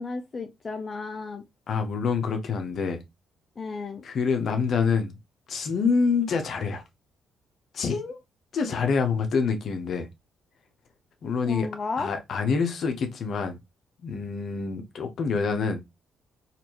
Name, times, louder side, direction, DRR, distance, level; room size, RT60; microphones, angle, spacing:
voice 1, 0.0-1.4 3.6-4.0 11.5-12.1, left 4 dB, 35° left, 0.5 m, -33 dB
voice 2, 1.7-3.0 4.0-5.1 5.5-6.8 7.7-8.2 8.5-10.1 11.2-11.7 12.0-13.6 14.0-15.8, left 5 dB, 60° left, 0.8 m, -26 dB
4.2 x 2.6 x 2.9 m
cardioid pair, 90°, 0 cm